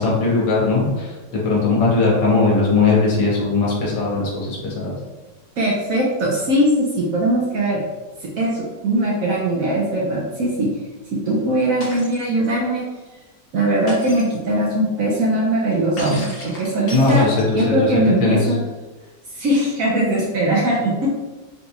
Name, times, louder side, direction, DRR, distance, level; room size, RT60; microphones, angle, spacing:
voice 1, 0.0-4.9 16.9-17.9 18.2-18.4, left 3 dB, 75° left, -4 dB, 1.6 m, -19 dB
voice 2, 5.6-6.7 7.0-7.8 8.2-10.7 11.3-12.8 13.5-17.3 17.5-18.6 19.3-21.1, right 1 dB, 65° right, -4 dB, 0.9 m, -20 dB
Shatter, 11.8-12.2 13.9-14.4 16.0-17.7, left 1 dB, 50° left, 0.7 m, -34 dB
3.9 x 2.3 x 2.8 m, 1.2 s
omnidirectional pair, 1.9 m